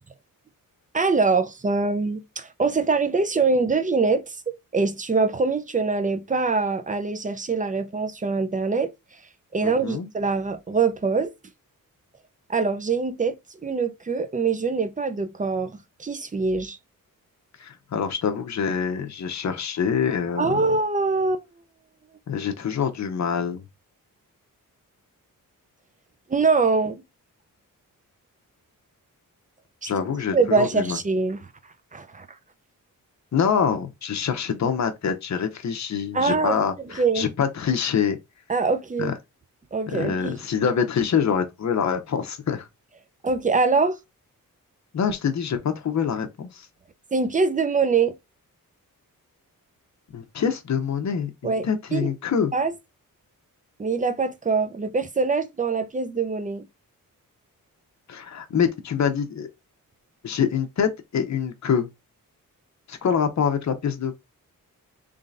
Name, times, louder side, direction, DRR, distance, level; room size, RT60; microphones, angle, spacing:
voice 1, 0.9-8.9 9.5-11.3 12.5-13.3 13.6-16.8 20.4-21.4 26.3-27.0 29.8-29.9 30.3-31.4 31.9-32.3 36.1-36.6 37.0-37.3 38.5-39.1 39.7-40.4 43.2-44.0 47.1-48.1 51.4-51.6 51.9-52.1 52.5-52.7 53.8-56.7, right 4 dB, 25° right, 0.5 m, -23 dB
voice 2, 9.6-10.1 17.6-20.7 22.3-23.6 29.8-31.0 33.3-38.2 39.0-39.1 39.9-42.7 44.9-46.7 50.1-52.5 58.1-59.5 60.2-61.9 62.9-64.1, left 7 dB, 55° left, 0.8 m, -25 dB
3.6 x 3.3 x 2.5 m
wide cardioid pair, 115°, 34 cm